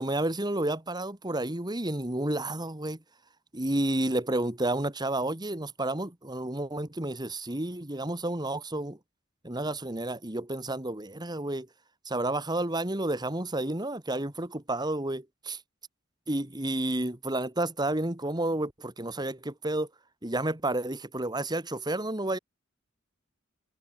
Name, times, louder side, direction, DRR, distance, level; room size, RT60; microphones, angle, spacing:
voice 1, 0.0-3.0 3.5-9.0 9.4-11.7 12.1-15.6 16.3-19.9 20.2-22.4, right 1 dB, 20° right, 2.1 m, -31 dB
head